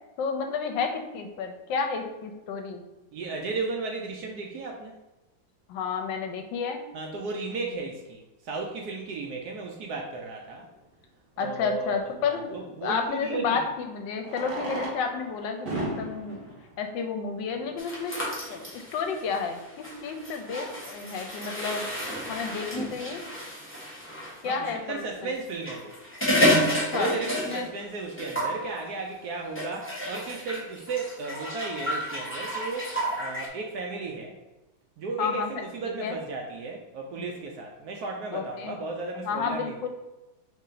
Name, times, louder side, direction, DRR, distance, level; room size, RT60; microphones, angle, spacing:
voice 1, 0.2-2.8 5.7-6.8 11.4-16.4 16.8-18.1 18.5-21.8 22.3-23.2 24.4-25.3 26.7-27.2 27.4-27.7 35.2-35.5 35.8-36.2 37.2-37.3 38.3-38.8 39.1-39.9, left 5 dB, 80° left, 5 dB, 1.2 m, -31 dB
voice 2, 3.1-4.9 6.9-10.7 11.4-13.6 24.4-26.0 26.9-27.3 27.5-34.4 35.0-39.9, right 3 dB, 70° right, 1 dB, 0.9 m, -34 dB
Fireworks, 10.6-10.7 13.0-13.1 14.2-17.9 18.7-18.8 19.0-19.1 19.3-19.4 19.9-20.1, right 1 dB, 35° right, 1.0 m, -36 dB
sound 1, 17.8-24.4 25.5-27.8 28.1-28.6 29.6-33.5, equal, 10° left, 0.6 m, -30 dB
4.2 x 3.3 x 3.8 m, 1.0 s
omnidirectional pair, 2.1 m